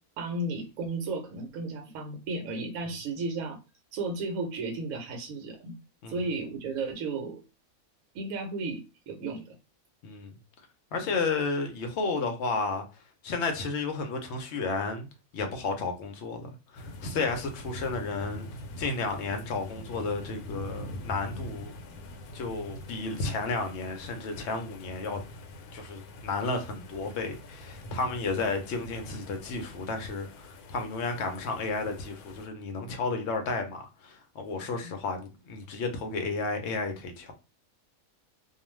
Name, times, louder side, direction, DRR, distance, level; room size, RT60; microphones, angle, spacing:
voice 1, 0.2-3.6 3.9-5.7 6.1-7.4 8.1-9.5 11.0-11.1 17.1-17.3 34.8-34.9, right 3 dB, 75° right, 1.0 m, -34 dB
voice 2, 10.0-10.3 10.9-12.8 13.2-15.1 15.3-18.4 18.8-21.7 22.3-25.2 25.7-37.3, left 3 dB, 65° left, 0.8 m, -32 dB
sound 1, 16.8-32.5, left 1 dB, 90° left, 1.1 m, -44 dB
2.4 x 2.3 x 3.1 m
omnidirectional pair, 1.5 m